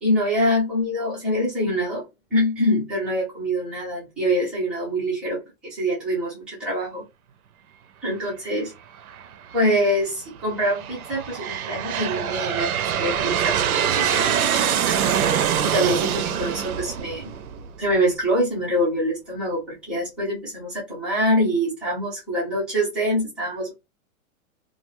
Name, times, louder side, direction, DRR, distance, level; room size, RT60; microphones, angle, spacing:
voice 1, 0.0-2.0 2.3-7.0 8.0-8.7 9.5-15.0 15.6-17.3 17.8-23.7, equal, 5° right, -8 dB, 0.3 m, -25 dB
Aircraft, 9.1-9.6 10.4-17.9, right 8 dB, 85° right, 0.6 m, -24 dB
2.4 x 2.2 x 3.0 m, 0.23 s
hypercardioid pair, 140°, 42 cm